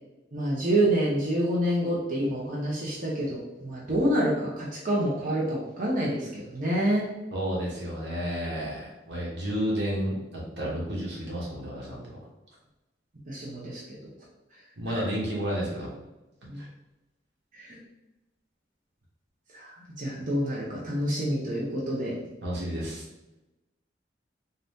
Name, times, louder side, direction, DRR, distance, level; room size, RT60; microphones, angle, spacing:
voice 1, 0.3-7.1 13.3-14.0 16.5-16.6 17.6-17.8 19.5-19.7 20.0-22.1, right 1 dB, 50° right, -5 dB, 0.8 m, -27 dB
voice 2, 7.3-12.2 14.8-15.9 16.6-16.7 22.4-23.0, equal, 80° right, -4 dB, 1.3 m, -31 dB
4.0 x 2.7 x 3.5 m, 1.0 s
head